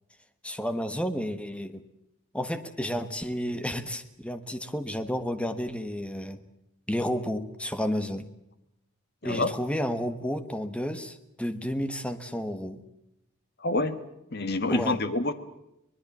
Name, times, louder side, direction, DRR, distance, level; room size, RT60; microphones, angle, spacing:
voice 1, 0.4-1.8 2.3-6.4 6.9-8.3 9.2-12.8 14.7-15.0, equal, 5° left, 10 dB, 1.3 m, -31 dB
voice 2, 13.6-14.0 14.3-15.3, left 2 dB, 50° left, 11 dB, 1.6 m, -26 dB
25.0 x 20.0 x 7.3 m, 0.86 s
head